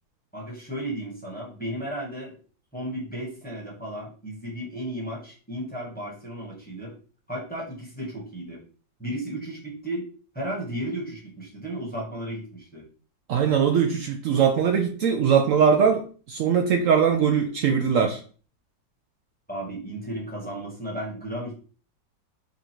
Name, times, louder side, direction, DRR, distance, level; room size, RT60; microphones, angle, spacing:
voice 1, 0.3-2.4 2.7-6.9 7.3-8.6 9.0-10.0 10.3-12.8 19.5-21.5, right 1 dB, 5° left, -4 dB, 1.1 m, -34 dB
voice 2, 13.3-18.2, right 7 dB, 85° right, 4 dB, 0.7 m, -21 dB
3.9 x 2.5 x 4.4 m, 0.39 s
omnidirectional pair, 2.0 m